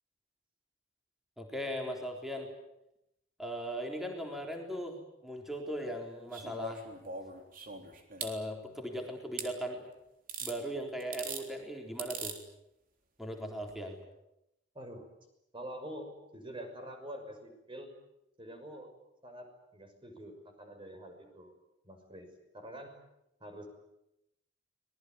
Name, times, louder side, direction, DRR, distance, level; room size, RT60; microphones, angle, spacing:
voice 1, 1.4-2.5 3.4-6.9 8.2-9.9 10.4-12.4 13.2-14.0, equal, ahead, 2 dB, 3.9 m, -38 dB
sound 1, 6.3-8.4 9.4-9.5 10.3-10.6 11.0-11.4 12.0-12.4 13.6-13.7, right 4 dB, 50° right, 3.7 m, -41 dB
voice 2, 14.7-15.1 15.5-17.9 18.4-18.9 19.2-21.5 21.8-22.3 22.5-23.0 23.4-23.7, right 1 dB, 30° right, 5 dB, 6.1 m, -46 dB
25.0 x 20.5 x 9.5 m, 0.86 s
head